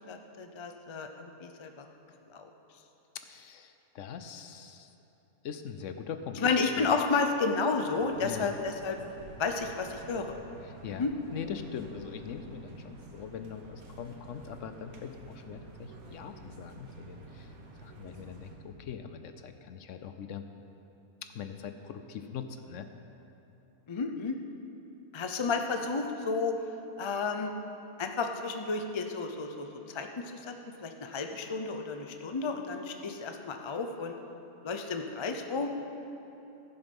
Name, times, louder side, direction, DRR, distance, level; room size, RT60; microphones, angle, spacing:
voice 1, 0.1-1.8 2.3-2.5 6.4-9.0 9.4-10.3 11.0-11.1 23.9-24.3 25.1-26.6 27.0-27.5 28.0-30.1 30.5-30.6 30.8-34.2 34.6-35.7, left 4 dB, 45° left, 5 dB, 0.3 m, -31 dB
voice 2, 3.2-4.9 5.4-6.9 8.2-8.5 10.6-17.5 17.8-20.5 21.2-22.9, left 7 dB, 65° left, 8 dB, 0.9 m, -42 dB
sound 1, 7.9-18.6, right 2 dB, 75° right, 1.7 m, -49 dB
15.5 x 6.9 x 5.4 m, 2.9 s
omnidirectional pair, 1.5 m